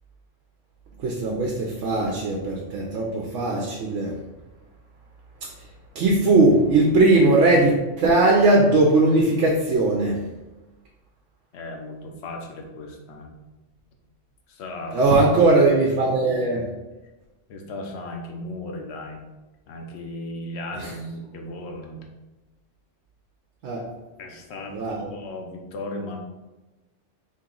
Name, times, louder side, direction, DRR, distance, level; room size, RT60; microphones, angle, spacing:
voice 1, 1.0-4.1 5.9-10.1 14.9-16.6 20.8-20.9 23.6-23.8 24.7-25.1, right 2 dB, 75° right, -1 dB, 0.9 m, -19 dB
voice 2, 11.5-13.3 14.5-15.1 17.5-19.2 19.7-22.0 24.2-24.8 25.1-26.2, left 1 dB, 65° left, 2 dB, 0.9 m, -36 dB
3.1 x 2.9 x 3.7 m, 1.1 s
omnidirectional pair, 1.2 m